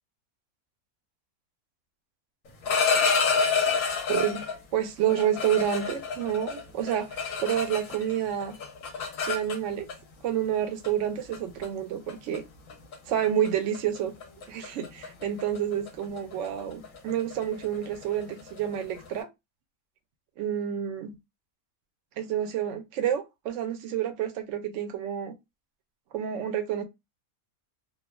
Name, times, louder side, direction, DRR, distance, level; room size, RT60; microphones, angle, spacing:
sound 1, 2.5-4.6 5.1-8.1 8.4-9.9 10.8-11.0 11.3-11.7 12.1-12.4 12.7-12.9 13.2-13.5 13.7-19.1, left 5 dB, 65° left, 1.1 m, -29 dB
voice 1, 4.1-8.6 9.2-9.9 10.2-12.4 13.1-14.1 14.5-19.3 20.4-21.2 22.2-25.3 26.1-26.8, right 10 dB, 65° right, 0.9 m, -29 dB
3.1 x 2.2 x 2.3 m
omnidirectional pair, 1.6 m